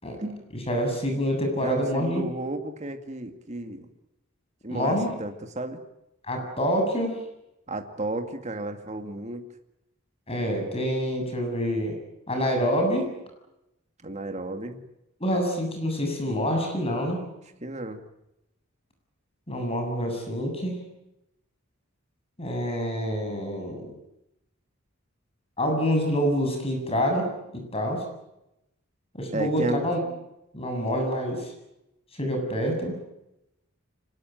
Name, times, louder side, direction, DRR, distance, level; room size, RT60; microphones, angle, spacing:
voice 1, 0.7-2.3 4.7-5.1 6.3-7.2 10.3-11.9 12.3-13.1 15.2-17.2 19.5-20.8 22.4-23.9 25.6-28.0 29.1-30.0 30.5-31.5 32.2-33.0, equal, 30° left, 3 dB, 7.6 m, -26 dB
voice 2, 1.5-3.9 4.6-5.8 7.7-9.5 14.0-14.8 17.6-18.0 29.3-29.9, right 2 dB, 35° right, 6 dB, 2.2 m, -33 dB
25.0 x 20.0 x 9.3 m, 0.88 s
head